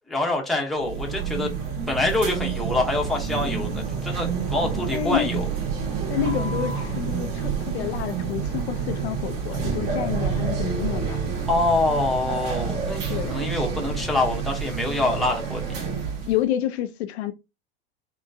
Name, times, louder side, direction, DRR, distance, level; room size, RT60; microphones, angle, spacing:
voice 1, 0.1-1.5 1.9-5.5 11.5-15.8, left 2 dB, ahead, 0.8 m, -25 dB
sound 1, 0.8-16.4, right 6 dB, 45° right, 1.8 m, -28 dB
voice 2, 4.9-5.3 6.1-11.2 13.1-13.3 16.3-17.3, left 11 dB, 80° left, 0.6 m, -28 dB
3.8 x 2.2 x 2.6 m
hypercardioid pair, 115°, 32 cm